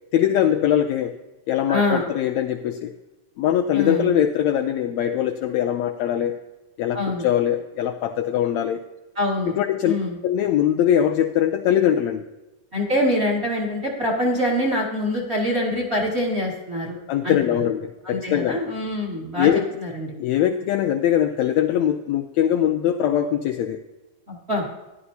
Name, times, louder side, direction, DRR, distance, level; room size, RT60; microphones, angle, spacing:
voice 1, 0.1-1.2 1.5-2.9 3.4-6.4 6.8-8.8 9.5-9.9 10.2-12.2 17.1-18.6 19.4-19.7 20.2-23.8, left 10 dB, 85° left, 5 dB, 1.6 m, -22 dB
voice 2, 1.7-2.1 3.7-4.1 6.9-7.3 9.2-9.5 9.8-10.2 12.7-17.0 17.2-17.6 18.0-19.5 19.8-20.1 24.3-24.6, left 1 dB, 25° right, -2 dB, 2.0 m, -24 dB
14.0 x 11.0 x 2.8 m, 1.0 s
omnidirectional pair, 3.7 m